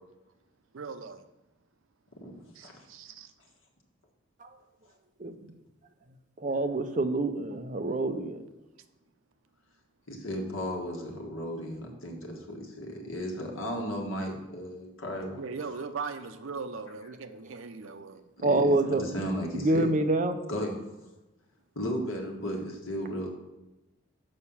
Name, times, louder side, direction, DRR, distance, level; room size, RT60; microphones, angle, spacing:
voice 1, 0.7-1.2 2.5-3.3 7.5-7.6 15.4-18.2, right 4 dB, 80° right, 10 dB, 0.6 m, -39 dB
voice 2, 6.4-8.4 18.4-19.0 19.5-20.5, right 2 dB, 40° right, 8 dB, 0.6 m, -26 dB
voice 3, 10.1-15.4 15.7-15.8 18.4-19.9 20.5-20.8 21.7-23.3, equal, 80° left, 1 dB, 1.5 m, -35 dB
6.5 x 5.5 x 5.6 m, 0.99 s
head